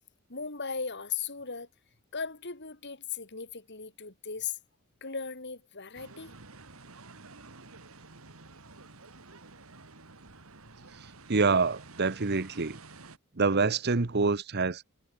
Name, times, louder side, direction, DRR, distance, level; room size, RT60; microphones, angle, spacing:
voice 1, 0.3-1.7 2.1-4.6 5.0-6.3, left 6 dB, 55° left, 3.8 m, -37 dB
sound 1, 5.9-13.2, right 3 dB, 75° right, 2.6 m, -51 dB
voice 2, 10.9-12.8 13.3-14.8, right 4 dB, 50° right, 1.0 m, -27 dB
head